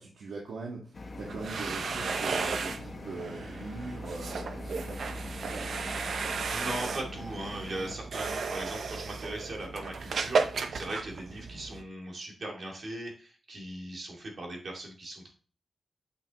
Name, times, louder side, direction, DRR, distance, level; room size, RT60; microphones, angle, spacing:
voice 1, 0.0-5.7, right 3 dB, 85° right, -3 dB, 1.7 m, -42 dB
sound 1, 0.9-8.0, left 2 dB, 35° left, 0.9 m, -43 dB
sound 2, 1.2-11.8, right 4 dB, 65° right, 0.7 m, -34 dB
voice 2, 6.5-15.3, right 1 dB, 45° right, 0 dB, 2.3 m, -39 dB
8.4 x 5.9 x 3.0 m, 0.38 s
wide cardioid pair, 165°, 0 cm